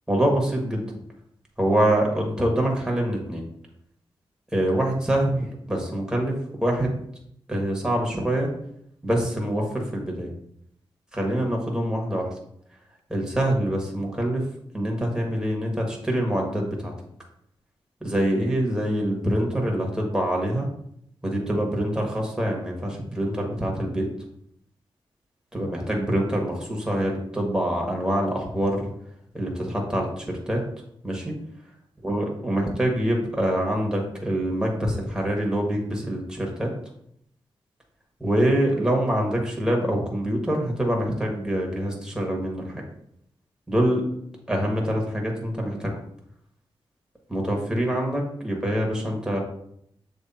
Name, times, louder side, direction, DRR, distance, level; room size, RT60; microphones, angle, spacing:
voice 1, 0.1-0.9 1.6-3.4 4.5-6.4 6.6-7.0 7.5-8.5 9.0-10.3 11.1-12.3 13.1-14.4 14.7-16.9 18.0-20.7 21.2-24.0 25.5-28.8 29.3-30.6 31.0-31.3 32.0-36.7 38.2-42.7 43.7-44.0 44.5-46.0 47.3-49.4, right 1 dB, 5° right, 0 dB, 1.5 m, -25 dB
7.0 x 3.2 x 4.2 m, 0.71 s
wide cardioid pair, 95°, 10 cm